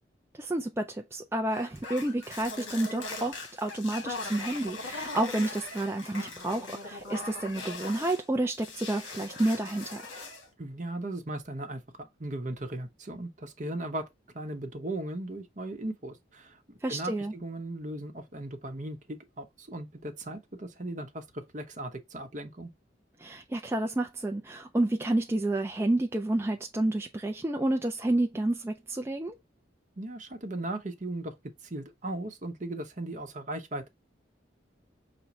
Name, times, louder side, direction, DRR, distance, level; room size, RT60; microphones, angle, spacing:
voice 1, 0.4-10.0 16.8-17.3 23.2-29.3, right 1 dB, 15° right, 0.3 m, -30 dB
sound 1, 1.5-8.2 8.5-10.5, left 3 dB, 80° left, 1.3 m, -40 dB
voice 2, 10.6-14.1 14.3-21.2 21.5-22.7 30.0-31.3 31.7-33.9, right 1 dB, 40° right, 0.8 m, -37 dB
5.9 x 2.2 x 4.0 m
head